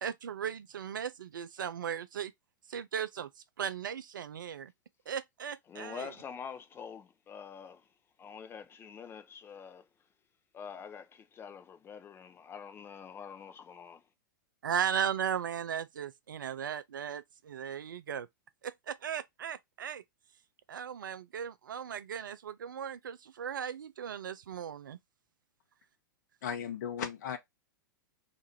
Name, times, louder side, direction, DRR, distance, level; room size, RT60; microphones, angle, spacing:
voice 1, 0.0-2.3 2.7-3.3 3.6-4.7 5.1-6.1 14.6-18.3 18.6-20.0 20.7-25.0, right 8 dB, 70° right, 0.5 m, -37 dB
voice 2, 5.7-7.9 8.2-9.9 10.5-14.0, left 7 dB, 20° left, 0.6 m, -46 dB
voice 3, 26.4-27.4, left 8 dB, 60° left, 0.9 m, -36 dB
2.9 x 2.4 x 4.2 m
figure-of-eight pair, 95°, 11 cm